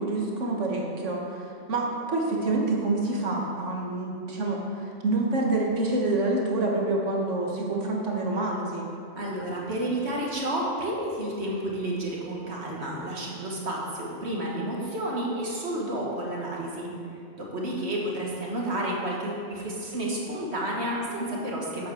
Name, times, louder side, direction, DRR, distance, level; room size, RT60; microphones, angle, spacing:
voice 1, 0.0-8.9, right 2 dB, 85° right, -1 dB, 1.8 m, -27 dB
voice 2, 9.2-16.9 17.4-21.9, right 1 dB, 65° right, -3 dB, 2.1 m, -31 dB
8.1 x 7.9 x 6.4 m, 2.5 s
omnidirectional pair, 1.2 m